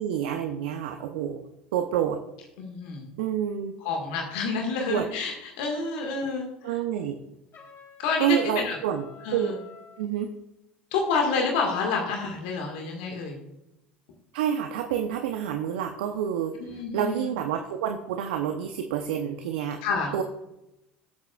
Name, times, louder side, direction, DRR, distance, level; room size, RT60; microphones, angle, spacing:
voice 1, 0.0-1.4 1.7-2.2 3.2-3.7 4.9-5.1 6.6-7.2 8.2-9.1 9.3-9.5 10.0-10.3 14.3-16.5 16.9-19.8 20.1-20.2, right 9 dB, 70° right, 6 dB, 0.8 m, -28 dB
voice 2, 2.6-3.1 3.8-6.8 8.0-8.8 9.2-9.6 10.9-13.4 16.6-17.3 19.8-20.1, left 4 dB, 65° left, 2 dB, 1.9 m, -29 dB
Trumpet, 7.5-10.1, left 7 dB, 45° left, 4.0 m, -49 dB
20.5 x 8.0 x 2.4 m, 0.91 s
figure-of-eight pair, 70°, 6 cm